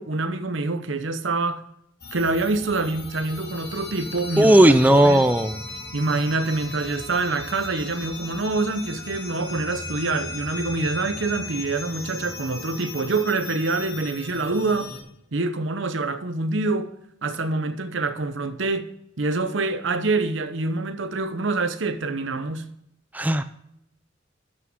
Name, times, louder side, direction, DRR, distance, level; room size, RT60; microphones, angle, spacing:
voice 1, 0.0-1.6 2.1-5.2 5.9-14.9 15.3-16.9 17.2-18.9 19.2-22.7, right 3 dB, 70° right, 0.9 m, -26 dB
sound 1, 2.0-15.0, left 3 dB, 60° left, 2.2 m, -37 dB
voice 2, 4.4-5.6 23.1-23.4, right 1 dB, 10° right, 0.4 m, -16 dB
12.5 x 6.0 x 3.6 m
head